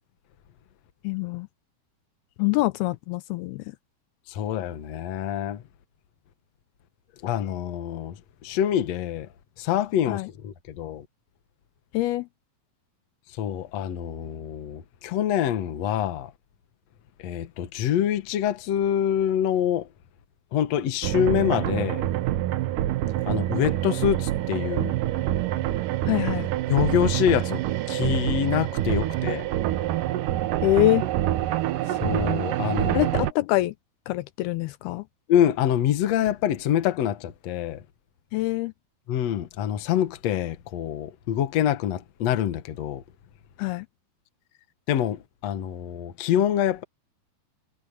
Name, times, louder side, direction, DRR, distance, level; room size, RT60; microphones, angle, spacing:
voice 1, 1.0-1.5 2.4-3.7 10.1-10.3 11.9-12.3 26.1-26.5 30.6-31.0 32.9-33.8 34.1-35.1 38.3-38.7 43.6-43.9, left 17 dB, 80° left, 2.6 m, -25 dB
voice 2, 4.3-5.6 7.2-9.3 9.6-11.1 13.3-16.3 17.2-19.9 20.5-22.0 23.3-24.9 26.7-29.5 31.9-33.1 35.3-37.8 39.1-43.0 44.9-46.8, left 10 dB, 60° left, 2.0 m, -26 dB
sound 1, 21.0-33.3, right 14 dB, 70° right, 2.1 m, -26 dB
omnidirectional pair, 4.5 m